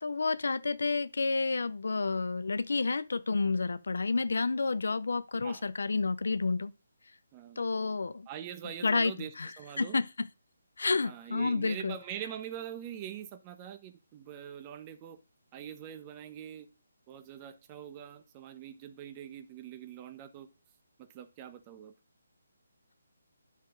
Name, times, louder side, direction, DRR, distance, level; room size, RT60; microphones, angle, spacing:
voice 1, 0.0-6.7 7.6-8.3 8.8-9.1 9.4-9.5 9.8-10.3 10.8-12.0, left 4 dB, 70° left, 0.5 m, -30 dB
voice 2, 7.3-7.9 8.3-10.0 11.0-15.2 15.5-16.7 17.1-20.5 21.0-21.9, right 10 dB, 25° right, 0.9 m, -44 dB
10.5 x 7.3 x 2.5 m
figure-of-eight pair, 150°, 0 cm